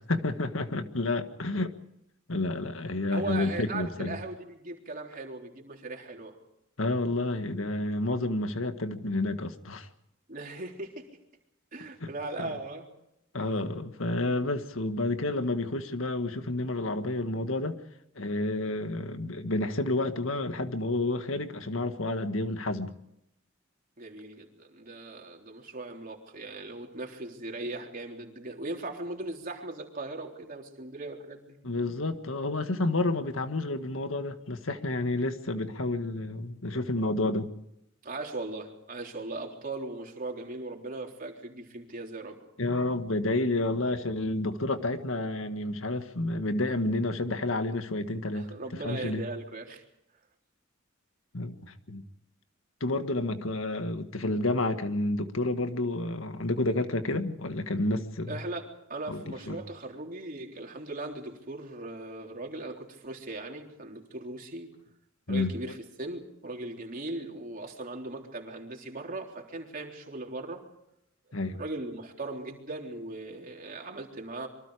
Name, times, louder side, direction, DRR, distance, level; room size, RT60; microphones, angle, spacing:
voice 1, 0.1-1.7 2.3-4.2 6.8-9.9 12.0-12.1 12.4-12.5 13.3-17.8 18.2-22.9 31.6-37.5 42.6-48.5 48.8-49.2 51.3-52.0 52.8-58.4 59.1-59.6 65.3-65.5 71.3-71.6, left 2 dB, 85° left, 8 dB, 1.8 m, -30 dB
voice 2, 3.1-6.3 10.3-11.2 11.7-12.9 13.4-13.5 24.0-31.6 38.0-42.4 48.3-49.8 58.3-64.7 65.3-70.6 71.6-74.5, right 2 dB, 45° right, 1 dB, 3.8 m, -38 dB
26.5 x 24.0 x 5.0 m, 0.80 s
head